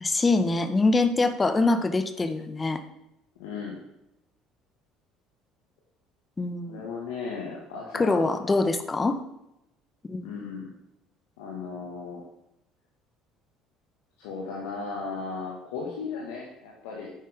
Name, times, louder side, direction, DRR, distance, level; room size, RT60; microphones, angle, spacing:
voice 1, 0.0-2.8 6.4-6.8 7.9-9.2 10.1-10.3, left 3 dB, 25° left, 9 dB, 1.3 m, -24 dB
voice 2, 3.4-3.8 6.6-8.3 10.2-10.7 11.4-12.2 14.2-17.1, left 4 dB, 70° left, -2 dB, 1.9 m, -36 dB
11.0 x 9.2 x 3.7 m, 0.86 s
hypercardioid pair, 60°, 0 cm